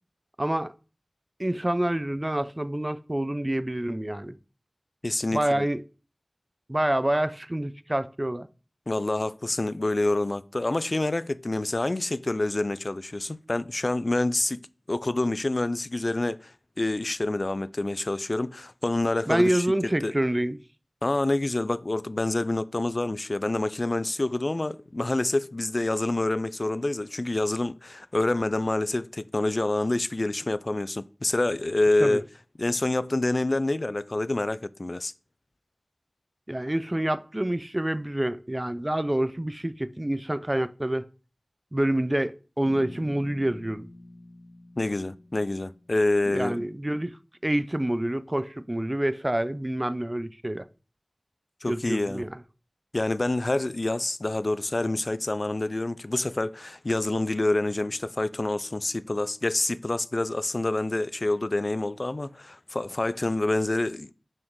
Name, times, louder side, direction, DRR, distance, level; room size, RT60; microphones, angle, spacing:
voice 1, 0.4-0.7 1.4-4.4 5.3-5.8 6.7-8.5 19.3-20.6 32.0-32.2 36.5-41.1 41.7-43.9 46.3-47.2 47.4-50.7 51.7-52.4, right 1 dB, 30° right, 0.4 m, -27 dB
voice 2, 5.0-5.7 8.9-14.6 14.9-20.1 21.0-32.2 32.6-35.1 44.8-46.7 51.6-52.2 52.9-64.1, left 2 dB, 55° left, 0.4 m, -27 dB
Bass guitar, 42.6-46.7, left 1 dB, 90° left, 1.4 m, -47 dB
6.2 x 4.3 x 4.6 m
wide cardioid pair, 40°, 0 cm